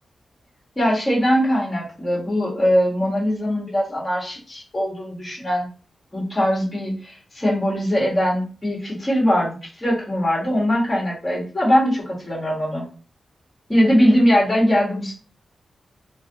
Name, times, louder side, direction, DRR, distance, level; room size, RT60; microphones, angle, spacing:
voice 1, 0.7-5.7 6.1-12.9 13.7-15.1, equal, 20° left, -5 dB, 1.6 m, -21 dB
3.1 x 2.7 x 3.9 m, 0.37 s
wide cardioid pair, 140°, 0 cm